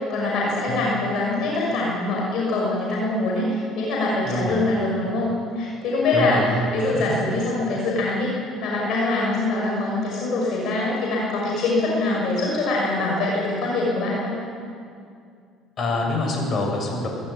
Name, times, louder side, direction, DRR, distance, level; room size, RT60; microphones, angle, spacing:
voice 1, 0.1-14.3, left 2 dB, 65° left, -3 dB, 6.2 m, -24 dB
voice 2, 4.2-4.6 6.1-6.6 6.9-7.0 15.8-17.1, left 2 dB, 45° left, 0 dB, 7.9 m, -25 dB
25.0 x 14.0 x 9.7 m, 2.3 s
supercardioid pair, 90°, 0 cm